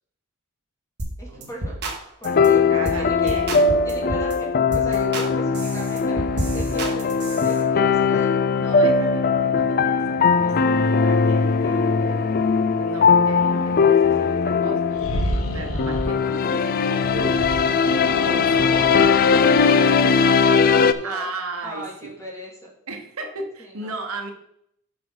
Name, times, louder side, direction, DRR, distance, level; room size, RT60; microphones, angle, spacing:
sound 1, 1.0-1.2 1.4-2.0 2.2-2.5 2.8-3.0 3.3-4.3 4.7-5.3 5.5-7.6, right 1 dB, 50° right, 1.9 m, -29 dB
voice 1, 1.2-1.8 2.2-3.4 3.8-8.4 10.4-11.1 18.7-21.3 21.6-22.7 23.6-24.0, right 1 dB, 15° left, -3 dB, 2.6 m, -39 dB
sound 2, 2.2-20.9, left 5 dB, 45° left, 0.4 m, -19 dB
voice 2, 2.7-3.6 8.6-12.3 12.8-14.9 15.5-17.5 18.1-18.9 21.0-21.8 22.9-24.3, right 2 dB, 80° right, 4 dB, 1.3 m, -35 dB
sound 3, 14.9-16.1 17.0-19.6, equal, 70° left, 1.3 m, -29 dB
9.5 x 6.1 x 3.9 m, 0.73 s
head